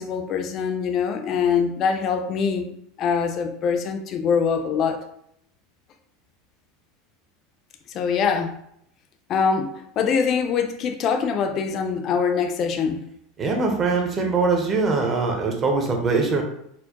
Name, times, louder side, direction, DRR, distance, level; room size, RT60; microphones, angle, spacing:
voice 1, 0.0-2.7 3.0-5.0 7.9-8.5 9.3-13.0, left 6 dB, 40° left, 6 dB, 0.4 m, -23 dB
voice 2, 13.4-16.4, right 4 dB, 25° right, 2 dB, 0.7 m, -22 dB
4.4 x 2.1 x 2.8 m, 0.73 s
supercardioid pair, 145°, 0 cm